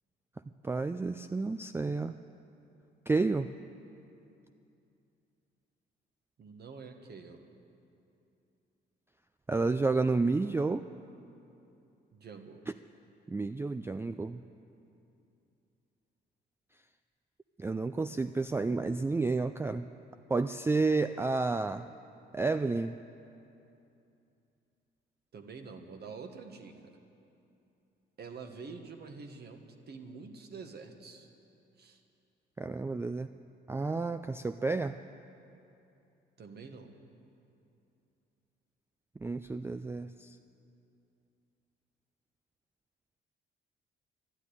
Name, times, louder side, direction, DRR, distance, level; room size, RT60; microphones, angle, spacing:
voice 1, 0.6-2.1 3.1-3.5 9.5-10.8 13.3-14.4 17.6-19.9 20.3-21.9 22.3-23.0 32.6-33.3 33.7-35.0 39.2-40.4, right 3 dB, 10° right, 10 dB, 0.3 m, -30 dB
voice 2, 6.4-7.4 12.1-12.7 25.3-26.9 28.2-31.3 31.8-32.0 36.4-36.9, right 4 dB, 55° right, 5 dB, 1.5 m, -47 dB
12.0 x 11.5 x 9.8 m, 2.7 s
cardioid pair, 90°, 20 cm